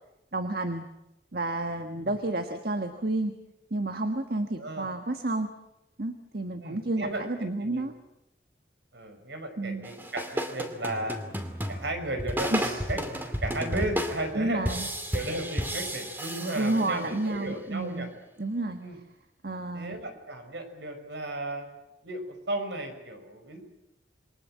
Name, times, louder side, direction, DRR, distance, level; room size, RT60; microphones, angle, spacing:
voice 1, 0.3-0.9 1.3-3.3 3.7-5.5 6.0-7.9 9.6-9.9 12.5-12.8 14.3-14.9 16.5-18.1 18.4-18.8 19.4-20.0, right 2 dB, 55° right, 6 dB, 1.5 m, -30 dB
voice 2, 4.6-4.9 6.6-7.2 7.6-7.9 8.9-11.2 11.7-14.7 15.1-18.1 18.8-19.0 19.7-21.7 22.0-23.6, right 1 dB, 70° right, 7 dB, 5.3 m, -34 dB
sound 1, 9.8-17.3, equal, 10° right, 2.5 m, -33 dB
28.0 x 23.0 x 7.6 m, 0.94 s
head